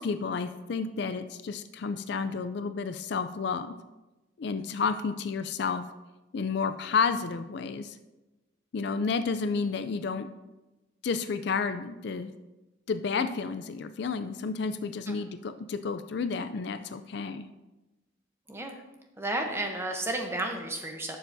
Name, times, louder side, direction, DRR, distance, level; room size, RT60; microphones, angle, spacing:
voice 1, 0.0-3.7 4.4-5.8 6.3-7.9 8.7-10.3 11.0-12.3 12.9-17.5, left 5 dB, 55° left, 10 dB, 0.4 m, -31 dB
voice 2, 19.2-21.2, right 1 dB, 15° right, 3 dB, 0.8 m, -32 dB
11.5 x 6.8 x 2.7 m, 1.1 s
head